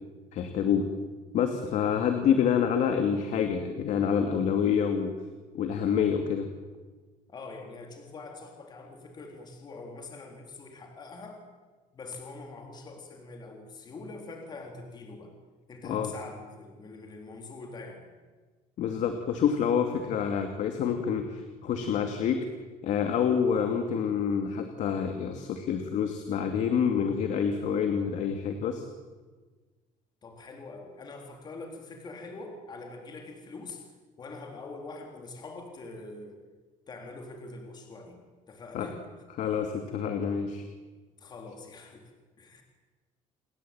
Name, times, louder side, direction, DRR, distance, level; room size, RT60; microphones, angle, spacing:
voice 1, 0.3-0.9 1.3-5.1 5.5-6.5 15.8-16.1 18.8-22.5 22.8-28.8 38.7-38.9 39.4-40.6, left 7 dB, 60° left, 6 dB, 2.6 m, -27 dB
voice 2, 7.3-11.4 11.9-15.3 15.7-18.1 30.2-33.9 34.2-36.4 36.9-38.2 38.5-39.1 41.2-42.1 42.4-42.6, left 3 dB, 30° left, 3 dB, 3.8 m, -44 dB
29.5 x 21.5 x 9.0 m, 1.3 s
cardioid pair, 165°, 14 cm